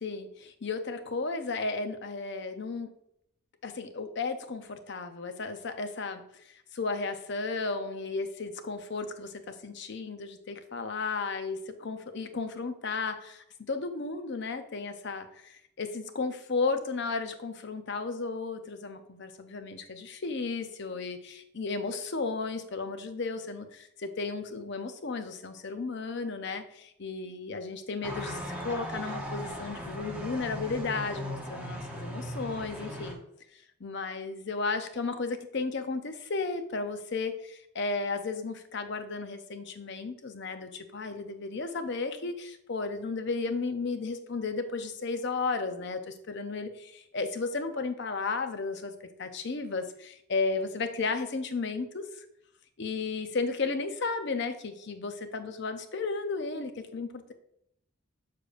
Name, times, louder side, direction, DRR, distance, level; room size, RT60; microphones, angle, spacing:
voice 1, 0.0-2.9 3.6-6.2 6.7-33.2 33.8-48.9 49.2-52.2 52.8-57.3, left 4 dB, 55° left, 8 dB, 0.6 m, -34 dB
sound 1, 28.0-33.1, equal, 5° right, 0.9 m, -38 dB
6.7 x 6.6 x 2.5 m, 0.74 s
head